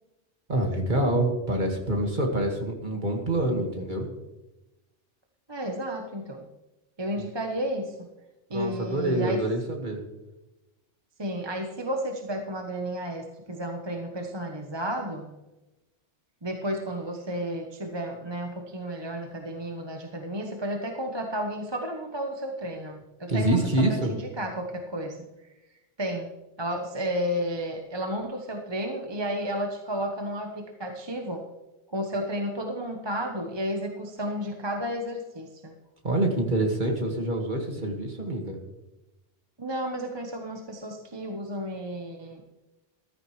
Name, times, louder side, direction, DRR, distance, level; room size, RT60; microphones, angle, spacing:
voice 1, 0.5-4.1 7.2-7.3 8.5-10.0 23.3-24.1 36.0-38.6, right 1 dB, 40° right, 1 dB, 2.1 m, -26 dB
voice 2, 5.5-6.5 7.0-8.1 8.5-9.5 11.2-15.3 16.4-23.6 23.9-25.3 26.0-26.3 26.6-31.4 31.9-35.7 39.6-42.4, equal, 25° right, 3 dB, 1.0 m, -32 dB
14.5 x 13.0 x 3.2 m, 1.0 s
omnidirectional pair, 1.2 m